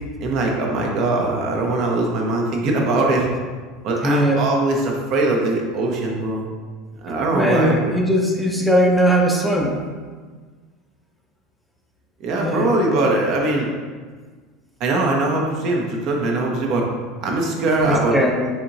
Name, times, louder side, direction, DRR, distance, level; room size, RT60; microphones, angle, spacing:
voice 1, 0.2-3.3 3.8-6.5 7.0-7.9 12.2-13.7 14.8-16.9 17.2-18.2, right 2 dB, 55° right, 0 dB, 0.7 m, -21 dB
voice 2, 4.0-4.5 7.3-9.8 12.4-12.7 17.8-18.5, equal, ahead, 0 dB, 0.5 m, -19 dB
4.2 x 2.9 x 2.6 m, 1.5 s
supercardioid pair, 100°, 0 cm